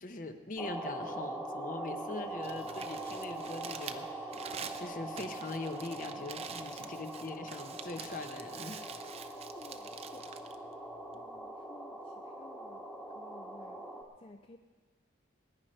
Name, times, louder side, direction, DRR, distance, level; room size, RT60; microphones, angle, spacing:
voice 1, 0.0-8.9, left 2 dB, 45° left, 8 dB, 0.8 m, -42 dB
sound 1, 0.6-14.0, right 1 dB, 10° left, 1.2 m, -42 dB
Crumpling crinkling, 2.3-11.4, right 6 dB, 35° right, 0.6 m, -47 dB
voice 2, 9.2-10.4 11.1-13.8 14.2-14.6, left 2 dB, 30° left, 6 dB, 0.4 m, -56 dB
20.0 x 10.0 x 4.4 m, 1.4 s
head